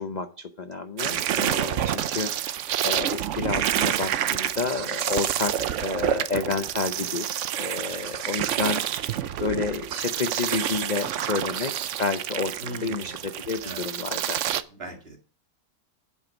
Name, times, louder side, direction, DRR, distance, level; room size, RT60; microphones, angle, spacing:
voice 1, 0.0-7.3 7.6-14.4, left 4 dB, 50° left, 8 dB, 0.5 m, -30 dB
sound 1, 1.0-14.6, right 10 dB, 65° right, 0.7 m, -28 dB
voice 2, 12.6-13.1 13.6-13.8 14.7-15.2, right 1 dB, 35° right, 3 dB, 2.1 m, -38 dB
9.1 x 8.3 x 5.2 m, 0.40 s
omnidirectional pair, 1.8 m